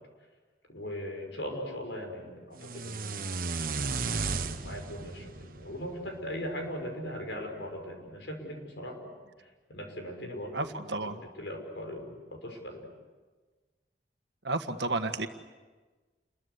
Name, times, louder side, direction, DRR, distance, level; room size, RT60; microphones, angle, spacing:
voice 1, 0.7-3.3 4.1-10.7 11.0-11.1 11.4-12.9, equal, 80° left, 3 dB, 6.1 m, -39 dB
sound 1, 2.6-6.7, right 4 dB, 50° right, 1.3 m, -35 dB
voice 2, 10.5-11.2 14.4-15.3, right 2 dB, 75° right, 8 dB, 1.6 m, -32 dB
29.5 x 22.0 x 8.3 m, 1.3 s
head